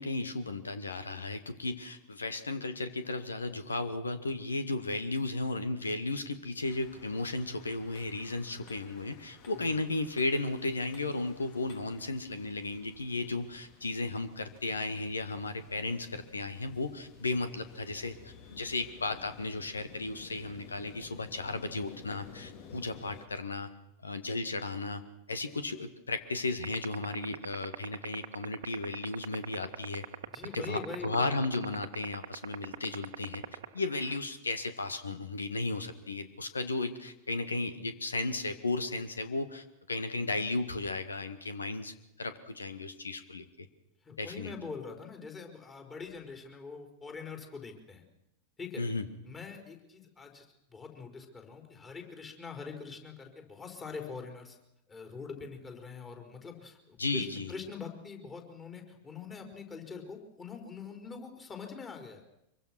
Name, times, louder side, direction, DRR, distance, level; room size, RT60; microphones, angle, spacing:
voice 1, 0.0-23.7 24.0-25.0 25.3-30.0 30.5-33.4 33.7-41.9 42.2-43.7 44.2-44.5 48.8-49.0 57.0-57.5, left 2 dB, 75° left, 11 dB, 1.9 m, -34 dB
sound 1, 6.6-23.3, left 7 dB, 45° left, 2.3 m, -54 dB
sound 2, 26.6-34.2, right 11 dB, 60° right, 1.4 m, -37 dB
voice 2, 30.2-31.4 44.0-48.0 48.6-48.8 49.2-54.6 54.9-62.2, left 5 dB, 20° left, 3 dB, 4.8 m, -44 dB
25.0 x 23.0 x 6.2 m, 0.83 s
figure-of-eight pair, 90°, 0 cm